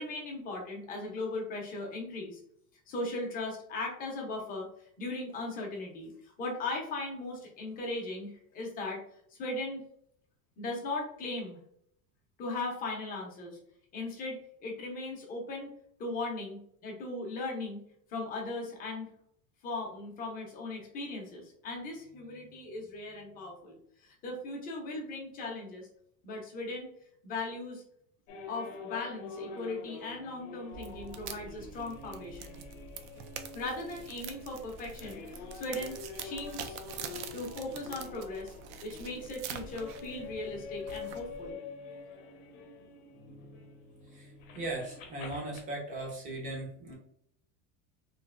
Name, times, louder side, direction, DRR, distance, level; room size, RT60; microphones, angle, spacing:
voice 1, 0.0-2.4 2.9-9.0 9.3-9.8 10.6-11.6 12.4-13.6 13.9-15.7 16.0-17.8 18.1-19.1 19.6-25.9 26.2-26.9 27.2-27.8 28.5-32.6 33.5-36.8 37.3-38.5 38.8-41.6, left 2 dB, 20° left, -1 dB, 0.6 m, -38 dB
sound 1, 28.3-45.6, left 5 dB, 60° left, 0.8 m, -46 dB
sound 2, 30.7-41.5, right 7 dB, 65° right, 0.5 m, -45 dB
voice 2, 44.0-46.9, right 2 dB, 20° right, 0 dB, 0.6 m, -38 dB
3.2 x 2.5 x 2.4 m, 0.68 s
cardioid pair, 175°, 39 cm